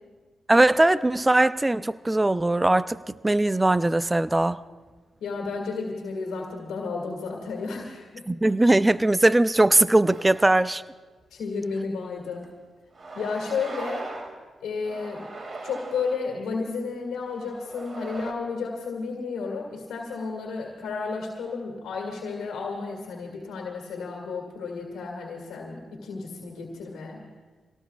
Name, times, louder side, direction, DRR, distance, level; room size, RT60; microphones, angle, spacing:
voice 1, 0.5-3.0 3.2-4.6 8.3-10.8, right 2 dB, 20° right, 15 dB, 0.4 m, -20 dB
voice 2, 5.2-8.3 11.3-12.5 13.1-14.1 14.6-15.3 15.6-27.2, left 4 dB, 85° left, -1 dB, 2.0 m, -32 dB
sound 1, 10.1-10.7 11.2-11.3 12.4-12.5 12.9-14.4 14.8-16.2 17.1-18.3, right 3 dB, 50° right, 2.1 m, -39 dB
26.5 x 18.0 x 2.3 m, 1.3 s
supercardioid pair, 50°, 0 cm